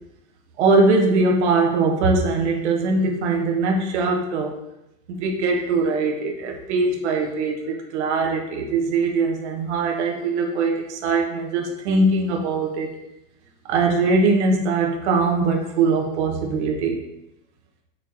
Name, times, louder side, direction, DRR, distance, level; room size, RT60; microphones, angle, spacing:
voice 1, 0.6-4.5 5.1-12.9 13.7-17.0, right 3 dB, 50° right, 1 dB, 1.7 m, -21 dB
6.7 x 4.7 x 4.4 m, 0.88 s
supercardioid pair, 175°, 43 cm